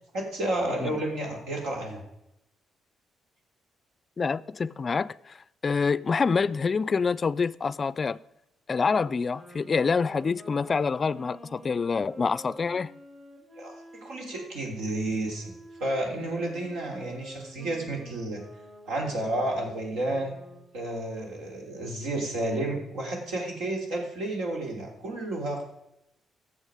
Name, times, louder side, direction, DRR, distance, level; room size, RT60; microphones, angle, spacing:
voice 1, 0.1-2.0 13.6-15.5 15.8-18.4 18.8-20.3 20.7-25.6, right 1 dB, 90° right, 3.1 m, -31 dB
voice 2, 4.2-5.4 5.6-8.2 8.7-12.9, left 5 dB, 40° left, 0.3 m, -26 dB
Wind instrument woodwind instrument, 8.8-14.6 15.3-20.7, right 1 dB, 45° right, 3.1 m, -48 dB
14.0 x 7.2 x 4.9 m
cardioid pair, 90°, 0 cm